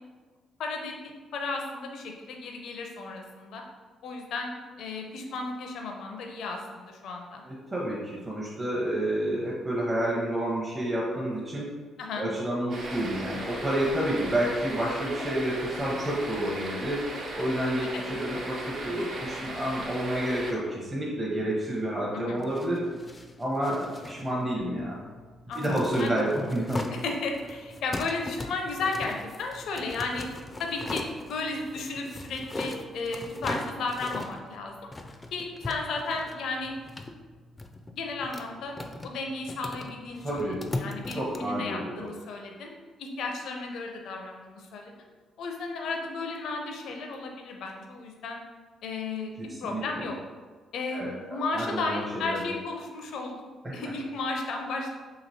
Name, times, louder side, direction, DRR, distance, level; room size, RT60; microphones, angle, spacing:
voice 1, 0.6-1.0 1.3-3.6 4.0-7.4 12.0-12.3 17.9-18.0 22.1-22.4 25.5-26.2 27.0-30.3 30.6-31.0 31.3-34.8 35.3-36.8 37.9-38.7 39.0-42.7 43.0-44.9 45.4-48.4 48.8-50.2 50.7-53.4 53.7-55.0, left 3 dB, 75° left, 2 dB, 0.5 m, -34 dB
voice 2, 7.5-11.7 12.2-17.0 17.3-22.8 23.4-25.0 25.5-26.8 40.2-40.6 41.1-42.1 49.4-50.1 50.9-51.1 51.5-52.4 53.6-53.8, right 1 dB, 20° right, -6 dB, 0.7 m, -29 dB
sound 1, 12.7-20.5, right 1 dB, 60° right, 0.8 m, -37 dB
sound 2, 22.3-41.4, left 2 dB, 20° left, 0.3 m, -40 dB
2.9 x 2.8 x 4.1 m, 1.4 s
cardioid pair, 90°, 0 cm